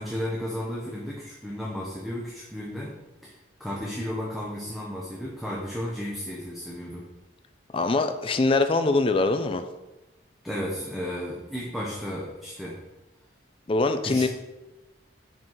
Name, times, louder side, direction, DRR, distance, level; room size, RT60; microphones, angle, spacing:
voice 1, 0.0-2.9 3.2-3.3 3.6-7.1 10.4-12.8 14.0-14.3, equal, ahead, -4 dB, 0.8 m, -33 dB
voice 2, 7.7-9.6 13.7-14.3, left 3 dB, 30° left, 8 dB, 0.4 m, -23 dB
5.5 x 5.2 x 4.6 m, 1.0 s
head